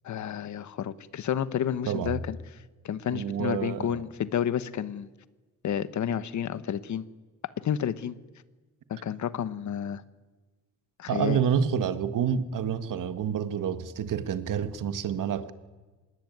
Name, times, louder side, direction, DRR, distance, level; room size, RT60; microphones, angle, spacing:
voice 1, 0.0-2.4 2.8-5.1 5.6-7.0 7.6-8.1 8.9-10.0 11.0-11.4, left 9 dB, 65° left, 1.3 m, -30 dB
voice 2, 1.9-2.2 3.1-4.0 11.1-15.5, right 8 dB, 80° right, 1.7 m, -28 dB
26.0 x 20.5 x 9.4 m
wide cardioid pair, 150°, 31 cm